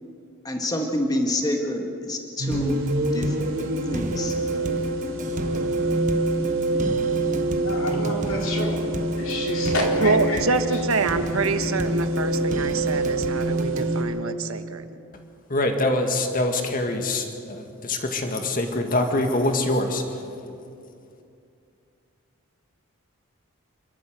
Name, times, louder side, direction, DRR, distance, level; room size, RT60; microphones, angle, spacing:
voice 1, 0.4-4.8 5.4-5.8, left 1 dB, 20° left, 2 dB, 1.7 m, -28 dB
sound 1, 2.4-14.0, right 2 dB, 65° right, 3.2 m, -26 dB
sound 2, 2.5-13.9, right 1 dB, 35° right, 1.0 m, -35 dB
voice 2, 7.6-8.8 9.2-10.8, left 2 dB, 75° left, -1 dB, 4.5 m, -29 dB
voice 3, 10.0-14.8, right 4 dB, 80° right, 9 dB, 1.2 m, -26 dB
voice 4, 15.5-20.0, left 2 dB, 40° left, 4 dB, 2.0 m, -24 dB
28.5 x 12.5 x 7.9 m, 2.5 s
head